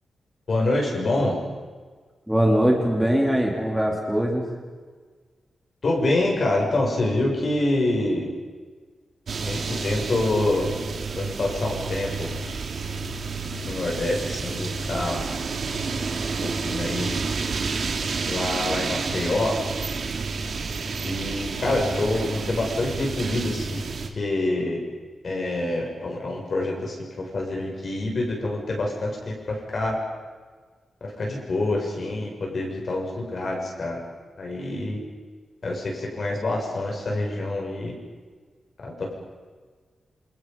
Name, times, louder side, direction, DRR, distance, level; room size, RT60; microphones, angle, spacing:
voice 1, 0.5-1.4 5.8-8.3 9.4-10.7 11.1-12.3 13.6-15.2 16.4-17.2 18.2-19.6 21.0-23.8 24.1-24.8 25.2-30.0 31.0-34.0 34.4-35.0 35.6-37.9 38.8-39.1, left 2 dB, 45° left, -1 dB, 6.6 m, -26 dB
voice 2, 2.3-4.5, equal, ahead, 0 dB, 3.1 m, -21 dB
sound 1, 9.3-24.1, right 4 dB, 55° right, 2.5 m, -30 dB
28.5 x 28.5 x 5.5 m, 1.5 s
wide cardioid pair, 170°, 0 cm